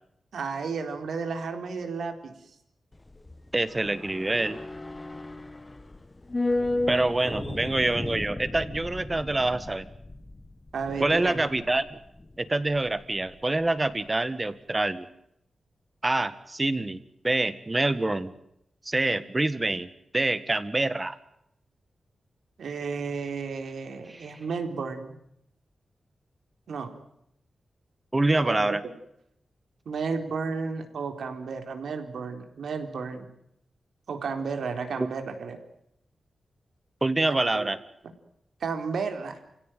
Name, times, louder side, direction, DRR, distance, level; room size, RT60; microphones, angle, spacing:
voice 1, 0.3-2.3 7.2-7.7 10.7-11.5 22.6-25.2 26.7-26.9 28.4-28.9 29.9-33.3 34.1-35.6 37.3-37.7 38.6-39.4, right 5 dB, 85° right, 6 dB, 4.0 m, -33 dB
sound 1, 2.9-13.4 13.7-13.8, left 2 dB, 20° left, 1.2 m, -34 dB
voice 2, 3.5-4.6 6.9-9.9 11.0-11.9 12.4-15.1 16.0-17.0 17.2-18.3 18.8-19.9 20.1-21.2 24.1-24.3 28.1-28.8 37.0-37.8, right 2 dB, 20° right, 14 dB, 1.6 m, -26 dB
29.5 x 16.5 x 9.2 m, 0.78 s
wide cardioid pair, 155°, 0 cm